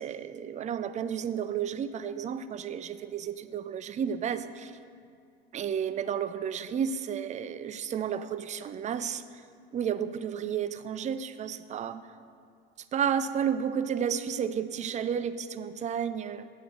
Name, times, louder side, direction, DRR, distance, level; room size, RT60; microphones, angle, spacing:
voice 1, 0.0-4.7 5.5-9.2 9.7-12.0 12.9-16.5, right 8 dB, 25° right, 13 dB, 0.4 m, -32 dB
8.3 x 6.0 x 7.1 m, 2.3 s
hypercardioid pair, 85°, 32 cm